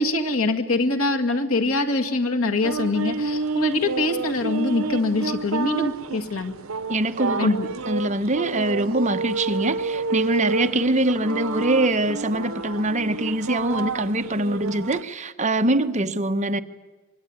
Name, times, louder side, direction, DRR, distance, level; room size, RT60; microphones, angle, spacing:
voice 1, 0.0-6.5 7.4-7.7, left 2 dB, 85° left, 5 dB, 2.2 m, -23 dB
sound 1, 2.6-15.0, right 4 dB, 75° right, 0.9 m, -29 dB
voice 2, 6.9-7.5 7.8-16.6, right 1 dB, 35° right, 8 dB, 1.1 m, -23 dB
25.0 x 22.5 x 9.7 m, 1.2 s
head